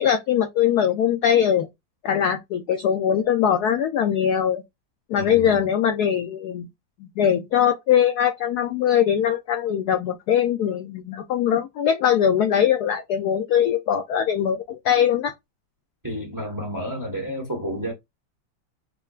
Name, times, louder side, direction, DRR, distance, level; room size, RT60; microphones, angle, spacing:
voice 1, 0.0-1.7 2.0-4.6 5.1-6.7 7.0-15.3, left 9 dB, 75° left, 0.9 m, -21 dB
voice 2, 5.2-5.6 16.0-17.9, equal, 15° right, 0.8 m, -30 dB
5.4 x 2.2 x 2.3 m
omnidirectional pair, 2.2 m